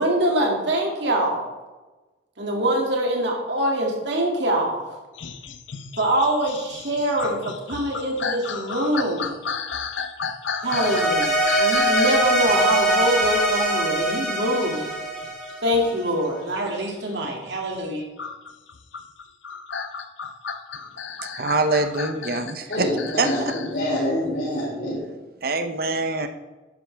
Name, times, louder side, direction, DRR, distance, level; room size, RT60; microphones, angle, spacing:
voice 1, 0.0-1.5 2.4-5.0 6.0-9.4 10.6-14.8 15.6-18.0, right 1 dB, 70° right, 2.4 m, -24 dB
sound 1, 5.1-17.6 18.2-23.7 24.3-24.4, left 6 dB, 85° left, 0.7 m, -34 dB
sound 2, 10.6-16.0, right 1 dB, 5° left, 2.4 m, -22 dB
voice 2, 21.3-22.9 23.2-23.3 25.4-26.3, right 3 dB, 50° right, 0.7 m, -24 dB
voice 3, 22.7-25.0, left 1 dB, 45° left, 3.2 m, -26 dB
11.5 x 9.7 x 3.4 m
head